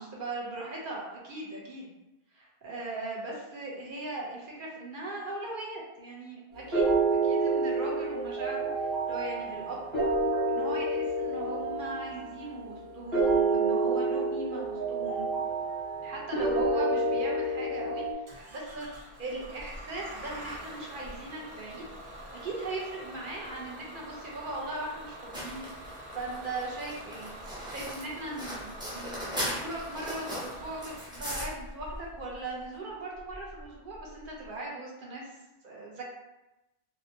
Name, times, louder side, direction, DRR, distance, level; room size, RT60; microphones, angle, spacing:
voice 1, 0.0-1.9 2.3-9.9 10.5-15.3 16.0-18.2 18.5-18.9 19.2-21.8 22.3-27.3 27.7-35.4 35.6-36.0, right 2 dB, 60° right, -3 dB, 0.7 m, -39 dB
sound 1, 6.7-18.1, right 3 dB, 30° right, 1.2 m, -28 dB
Bus / Engine starting, 18.3-34.5, right 1 dB, 75° right, 1.0 m, -45 dB
sound 2, 25.3-31.4, equal, 5° right, 0.3 m, -38 dB
2.8 x 2.1 x 2.6 m, 0.98 s
omnidirectional pair, 1.1 m